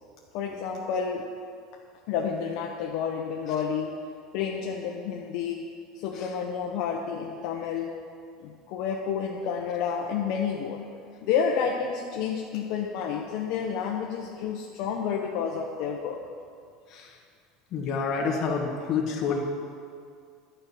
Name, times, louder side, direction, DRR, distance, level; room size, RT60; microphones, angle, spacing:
voice 1, 0.3-1.2 2.1-3.9 4.3-5.7 6.0-7.9 8.4-10.8 11.2-16.2, left 7 dB, 55° left, -1 dB, 0.9 m, -30 dB
voice 2, 17.7-19.4, left 5 dB, 35° left, -1 dB, 1.6 m, -28 dB
11.5 x 5.5 x 8.3 m, 2.2 s
cardioid pair, 165°, 0 cm